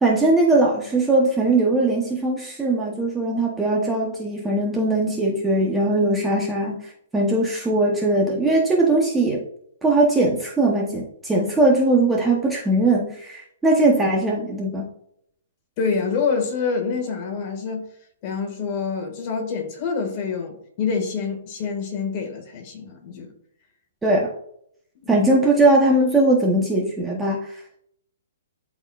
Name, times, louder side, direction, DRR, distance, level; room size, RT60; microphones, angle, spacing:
voice 1, 0.0-9.4 9.8-14.9 24.0-24.3 25.1-27.6, right 2 dB, 5° right, 0.9 m, -20 dB
voice 2, 15.8-17.9 18.2-23.3 25.0-25.2, left 5 dB, 30° left, 1.9 m, -26 dB
12.0 x 4.3 x 2.4 m
hypercardioid pair, 160°, 0 cm